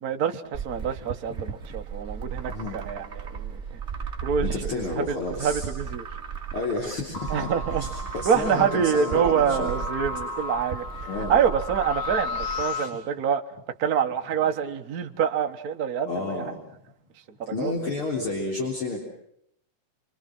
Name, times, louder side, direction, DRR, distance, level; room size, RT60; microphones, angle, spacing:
voice 1, 0.0-3.6 4.2-6.0 7.3-7.9 8.2-10.8 11.3-13.4 13.8-16.4 17.4-17.7, right 7 dB, 60° right, 0.9 m, -26 dB
sound 1, 0.5-12.6, right 6 dB, 35° right, 1.2 m, -36 dB
voice 2, 2.5-2.8 4.4-5.7 6.5-9.7 11.1-11.4 16.1-16.6 17.5-19.0, left 3 dB, 40° left, 4.3 m, -31 dB
sound 2, 7.1-12.9, left 4 dB, 80° left, 7.0 m, -34 dB
27.0 x 25.0 x 6.1 m
omnidirectional pair, 3.6 m